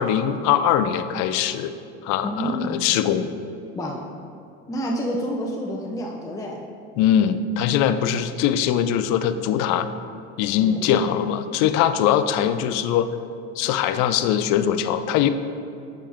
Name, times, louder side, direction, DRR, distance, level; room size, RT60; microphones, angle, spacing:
voice 1, 0.0-1.7 2.0-3.3 7.0-9.9 10.4-13.1 13.6-15.3, left 9 dB, 60° left, 11 dB, 0.5 m, -21 dB
voice 2, 2.2-2.8 3.7-4.0 4.7-6.6 10.6-10.9, equal, 10° left, -2 dB, 0.7 m, -29 dB
7.4 x 5.0 x 3.5 m, 2.6 s
hypercardioid pair, 85°, 32 cm